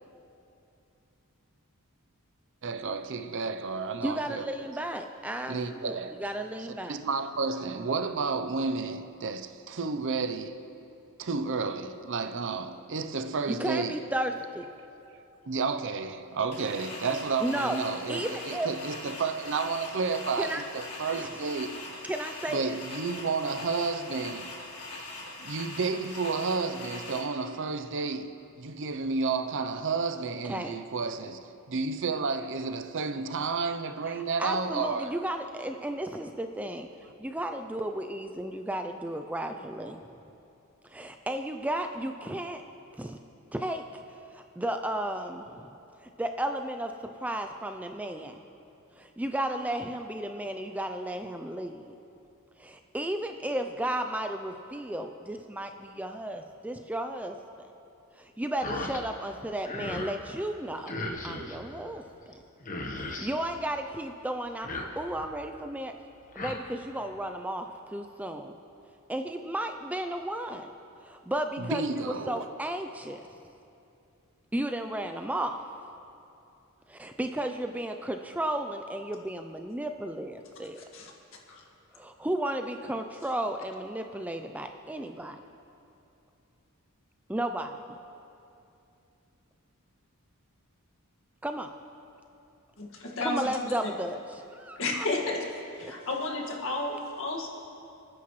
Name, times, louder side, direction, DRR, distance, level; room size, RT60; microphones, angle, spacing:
voice 1, 2.6-4.5 5.5-6.1 6.9-10.6 11.2-14.0 15.1-21.8 22.5-24.5 25.4-35.2 71.6-72.4, right 4 dB, 55° right, 0.7 m, -31 dB
voice 2, 4.0-7.0 13.5-14.7 17.4-17.8 18.1-18.7 20.4-20.6 21.1-21.5 22.0-22.8 30.4-30.8 34.1-36.9 37.2-40.0 40.8-42.6 42.9-43.2 43.5-45.7 46.0-48.4 48.9-51.9 52.6-57.7 58.2-60.9 61.2-62.4 63.0-65.9 66.4-68.6 69.1-70.7 71.0-73.2 74.5-75.6 76.9-80.8 81.9-85.4 87.3-88.0 91.4-91.7 93.2-95.1 95.8-95.9, right 1 dB, 5° right, 0.4 m, -34 dB
sound 1, 16.5-27.2, left 2 dB, 75° left, 3.7 m, -42 dB
sound 2, 58.6-59.0 59.4-60.2 60.9-61.6 62.3-62.4 62.6-63.3 64.5-65.3 66.1-66.6, left 2 dB, 35° left, 1.2 m, -37 dB
voice 3, 92.8-93.5 93.8-93.9 94.8-95.4 95.8-97.5, left 2 dB, 60° left, 1.9 m, -32 dB
29.5 x 9.9 x 3.2 m
head